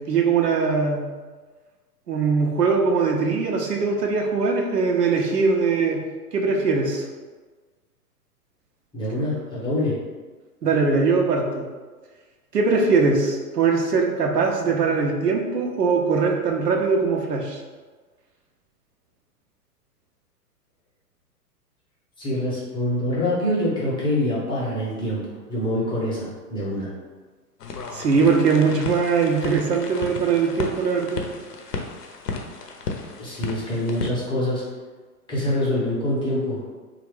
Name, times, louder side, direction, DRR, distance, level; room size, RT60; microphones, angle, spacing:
voice 1, 0.1-1.0 2.1-6.0 6.3-7.0 10.6-11.6 12.5-17.6 27.9-31.2, right 4 dB, 90° right, 1 dB, 0.7 m, -21 dB
voice 2, 8.9-10.0 22.2-25.2 25.5-26.9 33.2-34.6 35.3-36.6, left 1 dB, 10° left, -7 dB, 0.6 m, -25 dB
sound 1, 27.6-34.1, left 4 dB, 80° left, 0.7 m, -34 dB
3.1 x 2.4 x 3.3 m, 1.4 s
figure-of-eight pair, 110°, 47 cm